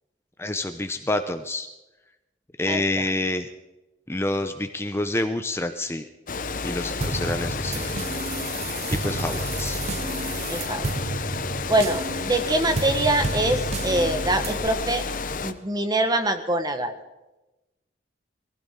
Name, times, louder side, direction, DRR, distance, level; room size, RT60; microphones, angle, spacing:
voice 1, 0.4-1.7 2.6-3.5 4.1-6.1 6.6-7.9 8.9-9.8, left 2 dB, 15° left, 7 dB, 0.7 m, -28 dB
voice 2, 2.7-3.0 10.5-10.8 11.7-15.0 15.4-16.9, right 1 dB, 20° right, 8 dB, 1.4 m, -24 dB
Water, 6.3-15.5, left 4 dB, 50° left, 0.9 m, -31 dB
sound 1, 7.0-14.7, right 3 dB, 35° right, 0.5 m, -32 dB
22.5 x 16.0 x 3.8 m, 1.0 s
head